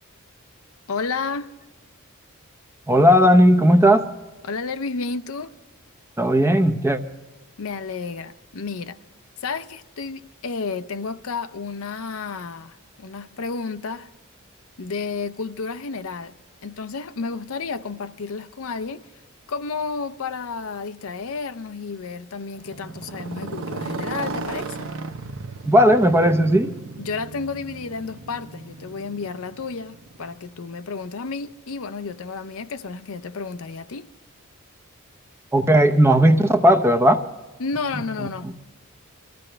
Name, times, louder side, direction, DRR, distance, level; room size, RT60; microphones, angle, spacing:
voice 1, 0.9-1.5 4.4-5.5 7.6-9.0 9.4-14.1 14.8-16.3 16.6-19.0 19.5-24.9 27.0-34.1 37.6-38.5, left 4 dB, 75° left, 0.6 m, -31 dB
voice 2, 2.9-4.0 6.2-7.0 25.7-26.7 35.5-37.2 38.4-38.6, equal, 10° right, 0.7 m, -16 dB
Motorcycle, 22.5-30.6, right 3 dB, 65° right, 0.8 m, -35 dB
22.5 x 14.5 x 3.3 m
head